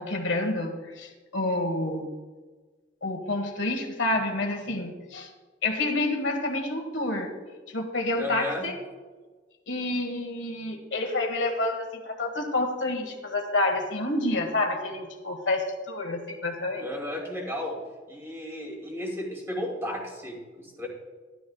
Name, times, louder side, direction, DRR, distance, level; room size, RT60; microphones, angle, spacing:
voice 1, 0.0-2.1 3.0-5.3 5.6-7.3 7.7-8.8 9.7-16.9, left 2 dB, 90° left, 4 dB, 1.5 m, -28 dB
voice 2, 8.2-8.6 16.8-17.8 18.1-20.9, left 1 dB, 15° right, -1 dB, 2.5 m, -34 dB
12.5 x 11.5 x 2.3 m, 1.3 s
head